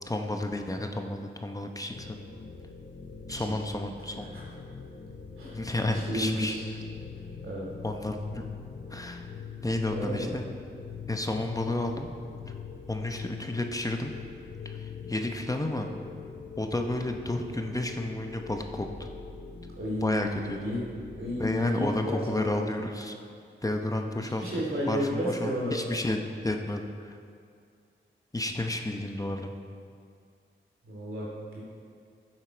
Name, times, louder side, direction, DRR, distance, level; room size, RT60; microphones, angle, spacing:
voice 1, 0.0-2.2 3.3-4.3 5.5-6.6 7.8-8.4 8.9-9.3 9.6-10.4 11.1-12.1 12.9-14.1 14.6-15.9 16.6-18.9 20.0-20.6 21.4-23.1 23.6-24.4 24.9-26.2 26.4-27.2 28.3-29.5, left 1 dB, 15° left, 4 dB, 0.8 m, -31 dB
sound 1, 1.9-21.7, left 5 dB, 50° left, 0.9 m, -43 dB
voice 2, 5.9-6.7 7.4-7.7 9.9-10.4 19.8-20.8 21.2-22.6 24.1-25.9 30.8-31.6, equal, 90° right, -4 dB, 2.6 m, -32 dB
11.0 x 7.4 x 4.6 m, 2.3 s
cardioid pair, 60°, 20 cm